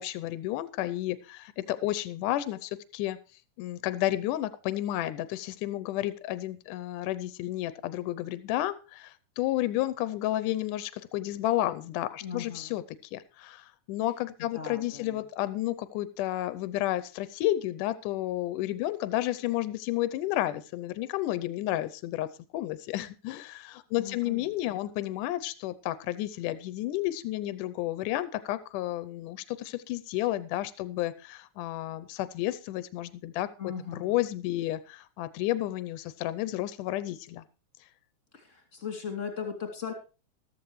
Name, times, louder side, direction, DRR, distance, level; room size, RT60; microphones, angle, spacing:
voice 1, 0.0-3.2 3.6-12.8 13.1-22.3 22.5-33.5 34.0-37.4, left 15 dB, 80° left, 14 dB, 2.3 m, -31 dB
voice 2, 12.2-12.8 14.5-15.2 24.0-24.8 33.6-34.3 38.3-39.9, left 7 dB, 25° left, 4 dB, 2.6 m, -38 dB
14.0 x 13.0 x 3.2 m, 0.34 s
omnidirectional pair, 3.6 m